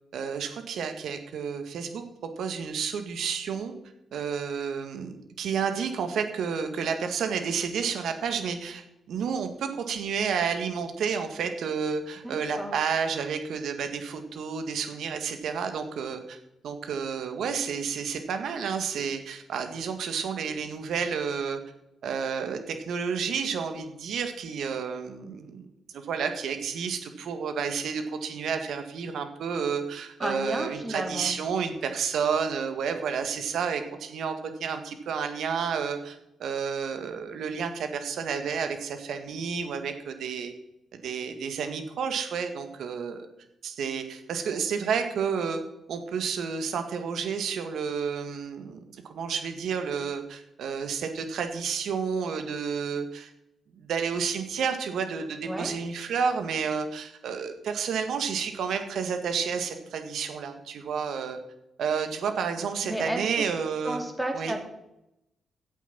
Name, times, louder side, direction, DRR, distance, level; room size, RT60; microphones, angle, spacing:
voice 1, 0.1-2.0 2.4-3.7 4.1-16.4 16.6-21.6 22.0-34.3 34.6-40.5 40.9-43.3 43.6-45.6 45.9-53.3 53.9-61.4 61.8-64.0 64.3-64.5, right 6 dB, 70° right, 7 dB, 1.8 m, -30 dB
voice 2, 12.2-12.7 30.2-31.3 55.4-55.7 62.8-63.2 63.8-64.6, right 1 dB, 10° right, 2 dB, 3.5 m, -32 dB
12.0 x 8.4 x 6.0 m, 0.85 s
hypercardioid pair, 50°, 0 cm